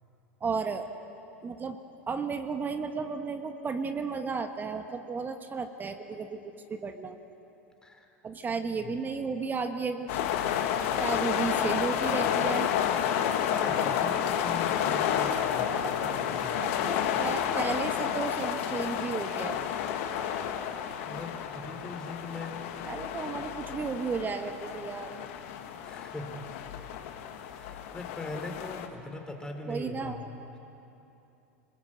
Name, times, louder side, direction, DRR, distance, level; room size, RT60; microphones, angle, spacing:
voice 1, 0.4-0.9 1.4-1.8 2.1-7.2 8.2-10.2 11.0-12.7 15.8-16.1 16.6-19.6 22.8-25.1 29.7-30.2, right 5 dB, 25° right, 7 dB, 1.5 m, -33 dB
voice 2, 7.8-8.1 8.8-9.0 13.5-16.6 21.0-22.7 25.8-26.6 27.3-30.6, left 2 dB, 10° left, 3 dB, 3.8 m, -41 dB
sound 1, 10.1-28.9, left 9 dB, 60° left, 1.9 m, -30 dB
29.0 x 20.5 x 7.9 m, 2.9 s
hypercardioid pair, 90°, 8 cm